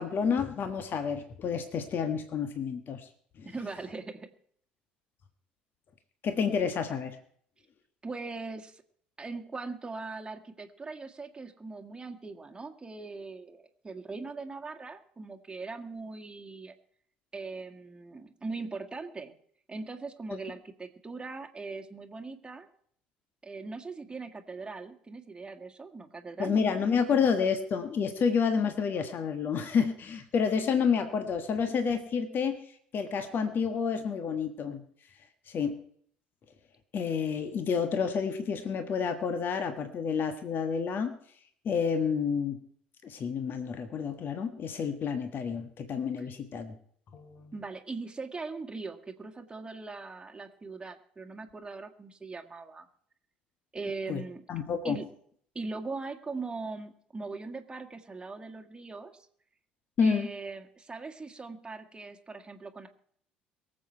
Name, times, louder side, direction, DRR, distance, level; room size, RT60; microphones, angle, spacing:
voice 1, 0.0-3.1 3.4-3.5 6.2-7.2 26.4-32.6 32.9-34.8 35.5-35.8 36.9-41.2 41.6-42.6 43.0-46.8 47.1-47.5 54.1-54.2 54.5-55.0 60.0-60.3, left 6 dB, 45° left, 9 dB, 1.4 m, -29 dB
voice 2, 3.5-4.3 8.0-8.8 9.2-16.8 17.3-19.3 19.7-22.7 23.4-26.8 46.2-46.3 47.5-52.9 53.7-54.4 54.8-55.1 55.6-59.1 60.0-62.9, right 3 dB, 20° right, 5 dB, 1.8 m, -40 dB
23.0 x 7.7 x 4.5 m, 0.62 s
figure-of-eight pair, 60°, 5 cm